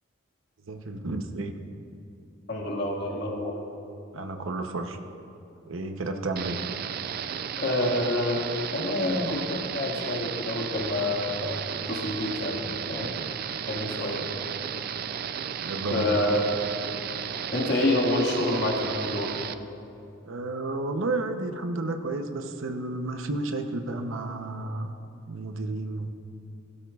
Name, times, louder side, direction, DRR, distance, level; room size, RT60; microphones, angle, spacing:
voice 1, 0.7-1.6 4.1-5.0 5.6-6.6 15.6-16.2 20.3-25.0 25.3-26.1, right 2 dB, 80° right, 6 dB, 0.7 m, -32 dB
voice 2, 2.5-3.6 7.5-11.6 11.9-13.1 13.5-14.3 15.9-16.5 17.5-19.3, left 1 dB, 55° left, -1 dB, 1.8 m, -28 dB
sound 1, 6.4-19.6, right 8 dB, 45° right, 0.4 m, -34 dB
16.5 x 12.5 x 2.4 m, 2.7 s
head